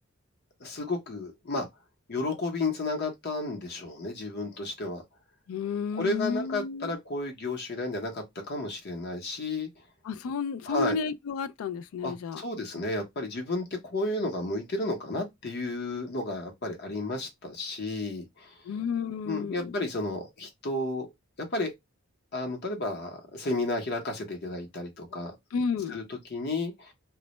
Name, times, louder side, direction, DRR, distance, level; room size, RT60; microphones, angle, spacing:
voice 1, 0.6-1.7 2.1-5.0 5.9-9.7 10.7-11.0 12.0-18.5 19.2-21.1 21.5-21.7 22.3-25.3 25.9-26.9, left 2 dB, 55° left, 0.8 m, -32 dB
voice 2, 5.5-7.0 10.0-12.4 18.6-19.7 25.5-26.0, left 5 dB, 85° left, 0.3 m, -31 dB
2.1 x 2.1 x 2.8 m
head